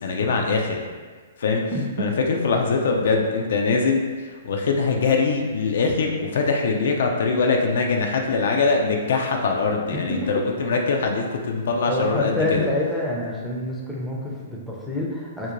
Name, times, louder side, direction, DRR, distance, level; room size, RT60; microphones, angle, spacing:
voice 1, 0.0-0.9 1.4-1.7 2.0-12.7, left 4 dB, 70° left, 2 dB, 0.3 m, -22 dB
voice 2, 1.7-2.1 9.9-10.3 11.9-15.5, left 1 dB, ahead, -5 dB, 0.5 m, -27 dB
2.5 x 2.1 x 2.9 m, 1.5 s
hypercardioid pair, 130°, 0 cm